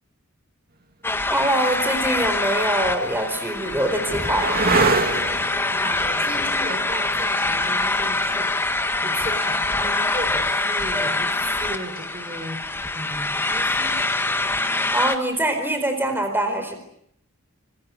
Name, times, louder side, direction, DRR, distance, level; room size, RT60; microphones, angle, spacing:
sound 1, 1.0-15.2, left 2 dB, 10° left, 1.8 m, -24 dB
voice 1, 1.2-4.6 14.9-16.8, right 1 dB, 10° right, 6 dB, 4.5 m, -24 dB
sound 2, 2.8-10.0 12.4-12.9, right 3 dB, 45° right, 2.4 m, -28 dB
voice 2, 5.6-8.5 9.0-14.0, right 1 dB, 25° right, 7 dB, 4.4 m, -36 dB
27.5 x 24.5 x 8.5 m, 0.73 s
head